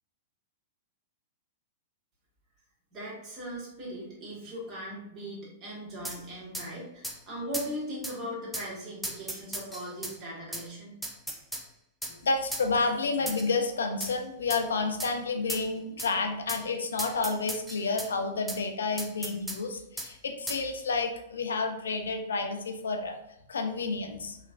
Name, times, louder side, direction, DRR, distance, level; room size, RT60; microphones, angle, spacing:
voice 1, 2.9-11.0, equal, 35° right, -5 dB, 1.4 m, -39 dB
sound 1, 6.0-6.2 6.5-6.7 7.0-7.2 7.5-7.7 8.0-8.2 8.5-8.7 9.0-10.2 10.5-10.7 11.0-11.7 12.0-12.2 12.5-12.7 13.3-13.5 14.0-14.2 14.5-14.6 15.0-15.1 15.5-15.7 16.0-16.1 16.5-16.6 17.0-18.1 18.5-18.6 19.0-19.6 20.0-20.1 20.5-20.6, right 1 dB, 5° right, 0.4 m, -36 dB
voice 2, 12.1-23.1 23.5-24.4, left 4 dB, 80° left, 5 dB, 0.4 m, -30 dB
3.0 x 2.3 x 2.5 m, 0.78 s
hypercardioid pair, 105°, 0 cm